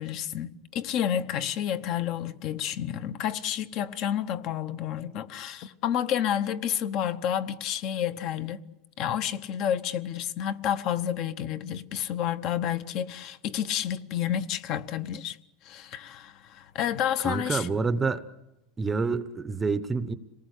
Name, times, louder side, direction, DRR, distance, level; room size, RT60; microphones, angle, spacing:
voice 1, 0.0-8.6 9.0-15.4 15.6-17.7, left 10 dB, 45° left, 0.9 m, -30 dB
voice 2, 17.2-18.2 18.8-20.1, right 4 dB, 10° right, 0.7 m, -27 dB
26.5 x 19.0 x 8.3 m
supercardioid pair, 165°, 0 cm